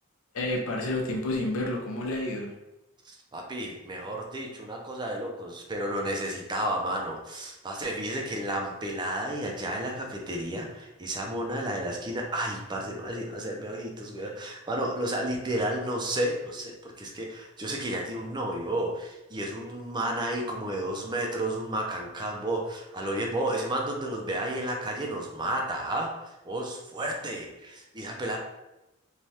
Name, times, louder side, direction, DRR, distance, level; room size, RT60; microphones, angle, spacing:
voice 1, 0.3-2.5, left 1 dB, 80° left, 1 dB, 0.6 m, -30 dB
voice 2, 3.1-28.4, right 1 dB, 20° right, 0 dB, 0.4 m, -32 dB
3.2 x 2.2 x 2.7 m, 0.95 s
head